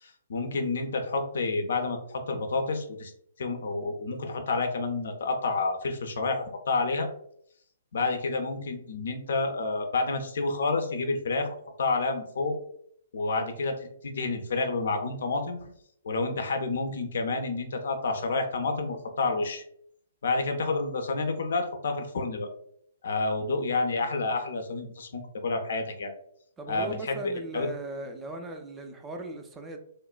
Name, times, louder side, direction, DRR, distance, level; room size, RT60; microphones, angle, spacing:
voice 1, 0.0-3.1 3.4-7.1 7.9-12.6 13.1-15.7 16.0-19.6 20.2-22.5 23.0-26.1 26.7-27.7, left 3 dB, 55° left, 5 dB, 0.4 m, -29 dB
voice 2, 26.6-29.8, right 1 dB, 15° right, 5 dB, 0.3 m, -38 dB
3.1 x 2.1 x 2.2 m, 0.67 s
figure-of-eight pair, 125°, 0 cm